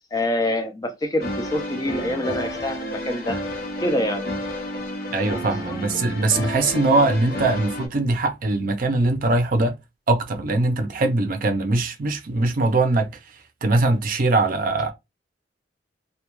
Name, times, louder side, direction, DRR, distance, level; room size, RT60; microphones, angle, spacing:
voice 1, 0.1-3.4 3.8-4.2 5.7-5.8, left 1 dB, 20° left, 0.5 m, -26 dB
sound 1, 1.2-7.9, left 1 dB, 55° left, 0.7 m, -31 dB
voice 2, 5.1-9.8 10.1-13.1 13.6-14.9, right 2 dB, 50° right, 0.5 m, -21 dB
2.3 x 2.2 x 3.0 m
head